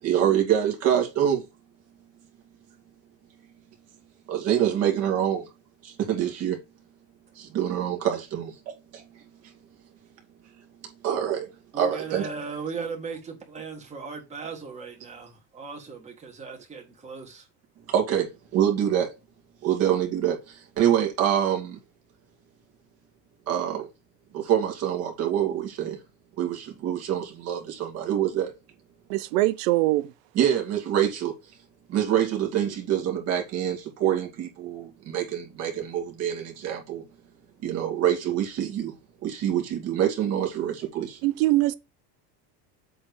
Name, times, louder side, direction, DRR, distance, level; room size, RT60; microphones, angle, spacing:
voice 1, 0.0-1.4 4.3-5.5 5.8-6.6 7.3-9.5 10.8-12.3 17.9-19.1 19.6-21.8 23.5-23.9 24.3-26.0 26.4-28.5 30.4-31.3 31.9-37.1 37.6-38.9 39.2-41.2, right 10 dB, 40° right, 2.3 m, -26 dB
voice 2, 11.7-13.2 13.5-17.5, right 5 dB, 15° right, 1.9 m, -37 dB
voice 3, 29.1-30.1 41.2-41.7, right 18 dB, 90° right, 0.9 m, -22 dB
7.8 x 3.3 x 6.2 m
cardioid pair, 175°, 39 cm